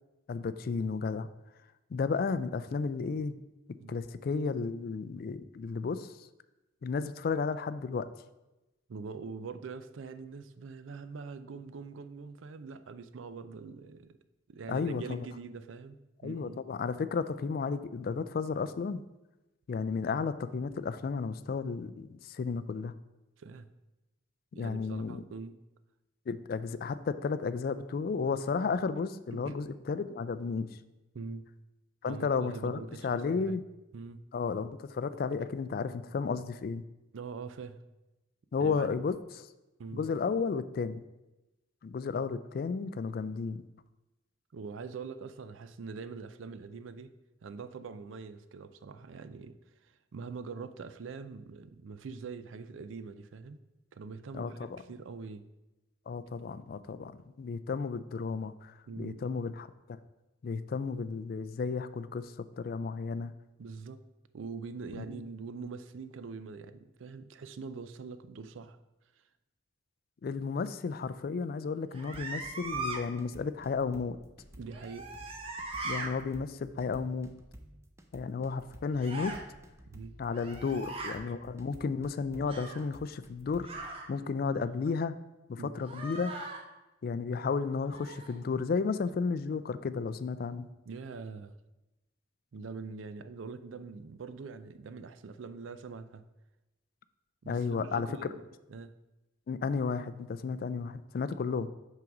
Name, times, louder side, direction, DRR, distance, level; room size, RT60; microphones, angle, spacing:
voice 1, 0.3-1.3 1.9-3.3 3.9-6.1 6.8-8.1 14.7-15.3 16.2-19.0 19.7-22.9 24.6-25.2 26.3-30.7 32.0-33.6 34.3-36.8 38.5-39.5 39.9-41.0 41.8-43.6 54.3-54.7 56.1-59.7 60.4-63.3 65.1-65.3 70.2-74.2 75.8-77.3 78.1-79.3 80.2-83.7 84.1-85.1 85.5-86.3 87.0-90.7 97.5-98.3 99.5-101.7, left 5 dB, 50° left, 13 dB, 0.3 m, -33 dB
voice 2, 8.9-14.2 14.5-16.6 23.4-23.7 24.5-25.6 29.4-29.6 31.1-31.5 32.1-33.6 33.9-34.2 37.1-37.8 38.6-38.9 39.8-40.1 44.5-47.1 47.4-49.6 49.8-53.6 53.9-55.5 58.9-59.2 63.6-64.0 64.3-68.8 74.6-75.1 79.9-80.1 80.7-80.8 81.3-81.4 85.6-85.8 90.9-91.5 92.5-96.2 97.4-98.4 98.7-98.9, right 4 dB, 85° right, 12 dB, 0.4 m, -43 dB
sound 1, 71.9-73.0 74.7-76.1 79.0-79.4 80.3-81.2 82.5-82.9 83.6-84.1 85.8-86.6 87.9-88.4, right 2 dB, 30° right, 0.8 m, -39 dB
sound 2, 72.0-83.9, right 1 dB, 15° right, 0.5 m, -53 dB
5.9 x 3.8 x 5.9 m, 1.0 s
head